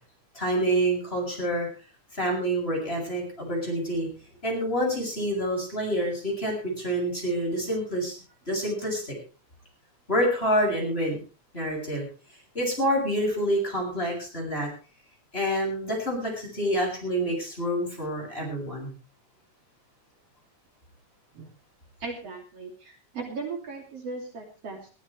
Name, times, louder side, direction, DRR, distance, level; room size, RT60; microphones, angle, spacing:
voice 1, 0.3-1.7 2.1-4.1 4.4-8.2 8.5-9.1 10.1-11.2 11.5-12.1 12.5-14.7 15.3-18.9, right 1 dB, 20° left, -1 dB, 7.8 m, -27 dB
voice 2, 22.0-24.9, right 4 dB, 55° right, 1 dB, 3.8 m, -37 dB
21.0 x 15.5 x 3.3 m, 0.34 s
omnidirectional pair, 3.3 m